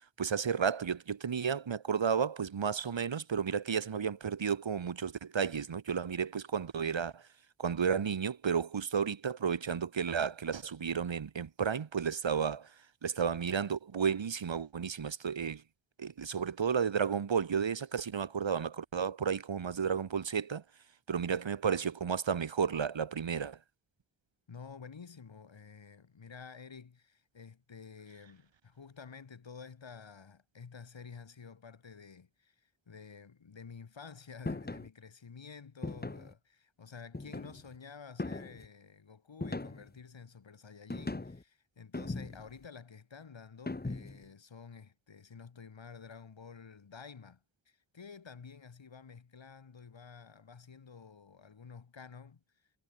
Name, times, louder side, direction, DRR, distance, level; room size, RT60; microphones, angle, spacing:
voice 1, 0.2-7.3 7.6-12.7 13.0-15.6 16.0-20.6 21.1-23.6, right 7 dB, 90° right, 2.7 m, -32 dB
voice 2, 24.5-52.4, left 5 dB, 80° left, 7.0 m, -51 dB
sound 1, 34.5-34.9 35.8-36.3 37.1-37.7 38.2-38.7 39.4-40.0 40.9-41.4 41.9-42.6 43.7-44.3, left 2 dB, 20° left, 1.6 m, -39 dB
wide cardioid pair, 65°, 44 cm